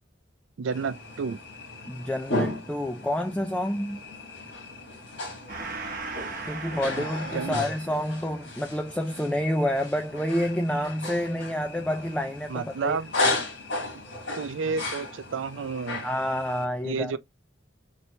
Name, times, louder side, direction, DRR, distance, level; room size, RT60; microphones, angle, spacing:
voice 1, 0.6-1.4 7.0-7.1 7.3-7.6 12.5-13.1 14.4-16.1 16.8-17.2, right 5 dB, 85° right, 0.4 m, -30 dB
sound 1, 0.7-16.6, left 2 dB, 75° left, 2.1 m, -35 dB
voice 2, 1.9-4.0 6.5-13.0 13.2-13.3 16.0-17.2, equal, 5° left, 0.3 m, -28 dB
Gong, 5.5-12.4, right 3 dB, 45° right, 0.8 m, -41 dB
4.0 x 3.0 x 3.2 m
head